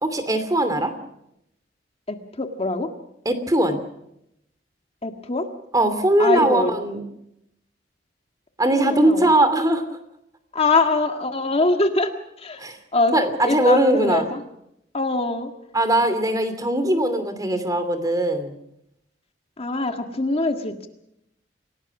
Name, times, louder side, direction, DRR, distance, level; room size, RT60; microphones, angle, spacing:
voice 1, 0.0-0.9 3.2-3.8 5.7-7.0 8.6-9.8 12.6-12.8 13.1-14.3 15.7-18.5, right 1 dB, 20° right, 10 dB, 2.8 m, -20 dB
voice 2, 2.1-2.9 5.0-5.5 6.2-6.7 8.7-9.3 10.5-12.1 12.4-12.6 12.9-13.1 13.4-14.4 14.9-15.5 19.6-20.9, left 2 dB, 35° left, 6 dB, 1.7 m, -23 dB
27.5 x 18.0 x 6.1 m, 0.80 s
head